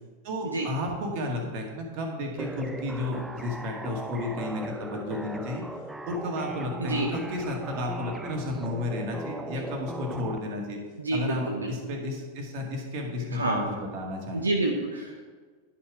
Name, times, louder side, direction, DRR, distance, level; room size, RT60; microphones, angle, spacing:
voice 1, 0.2-5.6 6.1-10.8 11.1-14.5, left 1 dB, 45° right, 1 dB, 2.0 m, -32 dB
sound 1, 2.4-10.4, right 1 dB, 5° right, 0.6 m, -38 dB
voice 2, 11.0-11.7 13.2-13.7 14.3-15.2, right 2 dB, 80° right, -1 dB, 1.0 m, -28 dB
11.0 x 5.9 x 4.9 m, 1.5 s
figure-of-eight pair, 90°, 0 cm